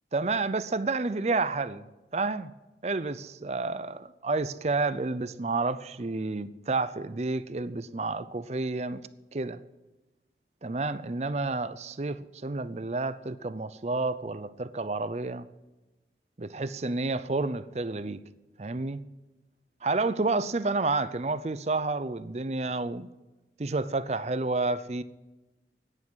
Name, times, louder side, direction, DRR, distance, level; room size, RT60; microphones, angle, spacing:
voice 1, 0.1-1.8 2.1-2.5 2.8-9.0 9.3-9.6 10.6-15.5 16.4-18.2 18.6-19.0 19.8-23.1 23.6-25.0, right 3 dB, 35° right, 0.5 m, -30 dB
11.0 x 9.7 x 9.6 m
head